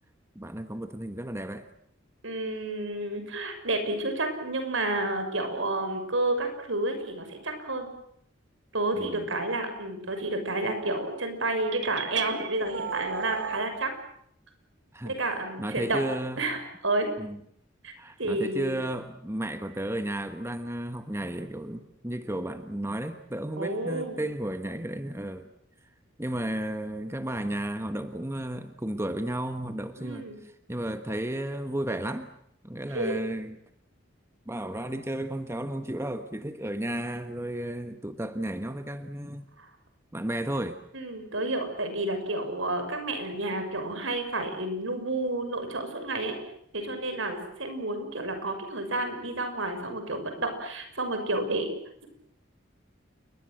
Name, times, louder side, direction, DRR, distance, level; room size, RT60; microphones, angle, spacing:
voice 1, 0.3-1.7 8.9-9.3 14.9-15.2 15.6-16.4 17.2-17.4 18.0-25.5 26.2-32.3 32.6-33.6 34.4-39.5 40.1-40.8, right 1 dB, 15° right, 8 dB, 1.3 m, -33 dB
voice 2, 2.2-7.9 8.7-13.9 15.0-16.0 16.4-17.1 17.8-17.9 18.2-18.7 23.6-24.2 30.0-30.3 32.9-33.2 39.6-39.7 40.9-46.4 46.7-51.7, right 2 dB, 80° right, 7 dB, 6.4 m, -30 dB
sound 1, 11.7-13.7, right 6 dB, 65° right, 1.9 m, -34 dB
29.0 x 22.0 x 7.7 m, 0.69 s
head